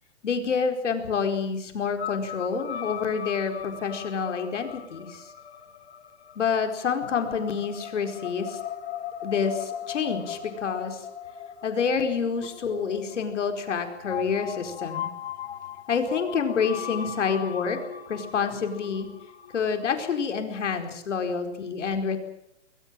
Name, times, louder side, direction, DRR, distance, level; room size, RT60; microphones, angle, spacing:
voice 1, 0.2-5.3 6.4-8.6 9.2-11.1 11.6-15.1 15.9-17.8 18.1-19.1 19.5-22.2, left 6 dB, 85° left, 6 dB, 4.6 m, -28 dB
sound 1, 2.0-20.1, left 9 dB, 60° left, 3.1 m, -39 dB
22.0 x 19.0 x 9.0 m, 0.76 s
hypercardioid pair, 170°, 35 cm